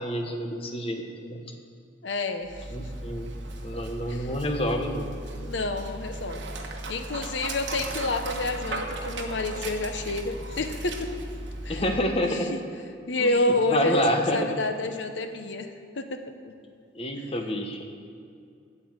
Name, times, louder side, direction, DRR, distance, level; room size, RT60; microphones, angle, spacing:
voice 1, 0.0-1.5 2.7-3.3 3.6-5.1 11.7-12.5 13.2-14.6 16.9-17.8, equal, 30° left, 4 dB, 1.0 m, -28 dB
voice 2, 2.0-2.9 4.1-4.3 5.3-6.5 6.9-11.1 11.6-11.8 12.2-12.6 13.1-15.7 16.0-16.2, left 2 dB, 80° left, 7 dB, 0.9 m, -29 dB
Dog, 2.4-12.4, right 2 dB, 75° right, 1.3 m, -36 dB
8.9 x 7.8 x 7.9 m, 2.3 s
head